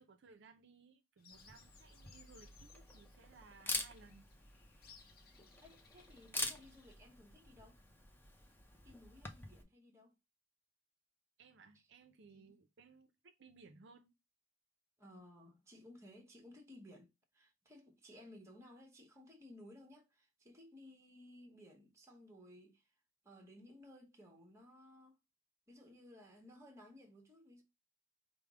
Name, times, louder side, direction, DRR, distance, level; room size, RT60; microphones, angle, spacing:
voice 1, 0.0-4.3 11.4-14.1, right 4 dB, 55° right, 0.5 m, -61 dB
sound 1, 1.2-7.0, left 6 dB, 45° left, 0.7 m, -65 dB
Camera, 1.3-9.6, left 2 dB, 10° left, 0.5 m, -46 dB
voice 2, 5.6-7.8 8.7-10.2 12.3-12.6 15.0-17.1 17.3-22.9 23.2-25.2 25.7-27.6, left 1 dB, 15° right, 0.9 m, -58 dB
4.9 x 2.0 x 4.7 m
head